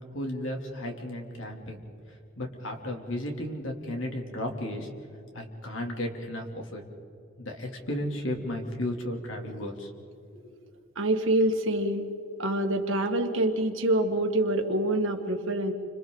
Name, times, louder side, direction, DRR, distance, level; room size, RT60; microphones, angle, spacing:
voice 1, 0.1-1.8 2.4-4.9 5.3-6.8 7.4-9.9 10.3-10.4, left 1 dB, 80° left, 2 dB, 2.9 m, -34 dB
voice 2, 11.0-12.1 12.4-15.7, right 1 dB, 85° right, 4 dB, 1.9 m, -26 dB
29.5 x 26.0 x 3.9 m, 2.6 s
head